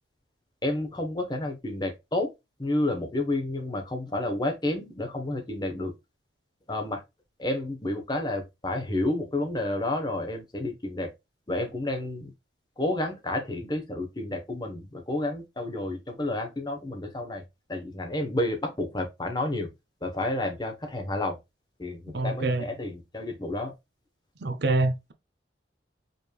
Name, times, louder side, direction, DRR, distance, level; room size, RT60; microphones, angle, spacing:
voice 1, 0.6-2.3 2.6-5.9 6.7-7.0 7.4-11.1 11.5-12.3 12.8-17.4 17.7-19.7 20.0-21.4 21.8-23.7, left 1 dB, 20° left, 0.9 m, -30 dB
voice 2, 22.1-22.7 24.4-25.1, right 2 dB, 60° right, 0.6 m, -26 dB
5.2 x 3.2 x 2.3 m
head